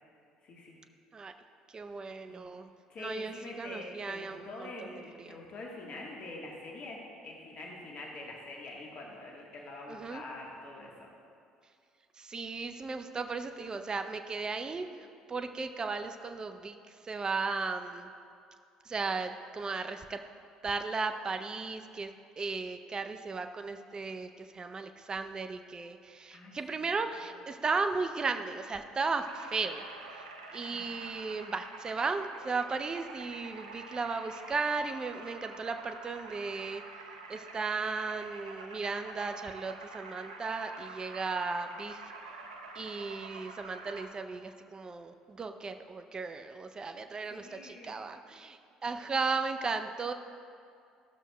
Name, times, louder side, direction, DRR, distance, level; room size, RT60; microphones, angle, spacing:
voice 1, 0.4-0.8 2.3-2.4 2.9-11.1 26.3-26.9 30.7-31.0 47.3-47.9, left 2 dB, 50° left, -1 dB, 1.3 m, -45 dB
voice 2, 1.7-2.7 3.0-5.4 9.9-10.2 12.2-14.9 15.3-18.1 18.9-20.2 20.6-22.1 22.4-29.9 30.1-30.2 30.5-36.8 37.3-42.0 42.7-50.1, right 4 dB, 30° right, 7 dB, 0.5 m, -35 dB
sound 1, 29.2-44.0, right 3 dB, 90° right, 0.6 m, -47 dB
14.5 x 6.2 x 2.2 m, 2.4 s
hypercardioid pair, 60°, 3 cm